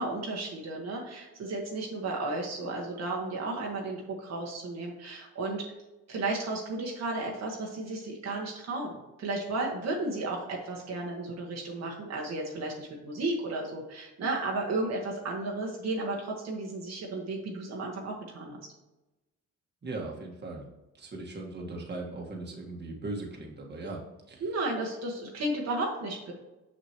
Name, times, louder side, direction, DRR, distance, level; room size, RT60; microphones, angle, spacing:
voice 1, 0.0-5.7 6.1-18.6 24.4-26.3, right 2 dB, 60° right, -2 dB, 1.4 m, -33 dB
voice 2, 19.8-20.7 21.0-24.0 24.3-24.4, right 2 dB, 35° right, -1 dB, 1.6 m, -38 dB
6.3 x 5.9 x 3.0 m, 1.0 s
cardioid pair, 90°, 30 cm